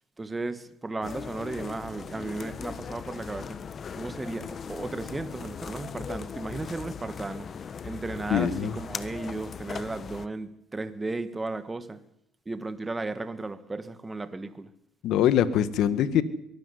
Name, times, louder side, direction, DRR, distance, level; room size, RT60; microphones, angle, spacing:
voice 1, 0.2-3.6 3.9-7.5 7.8-12.0 12.4-14.7, right 3 dB, 15° right, 11 dB, 1.6 m, -35 dB
sound 1, 1.0-10.3, left 6 dB, 40° left, 1.2 m, -39 dB
voice 2, 8.3-8.7 15.0-16.2, left 10 dB, 65° left, 14 dB, 1.6 m, -23 dB
22.5 x 12.5 x 9.8 m, 0.79 s
supercardioid pair, 100°, 0 cm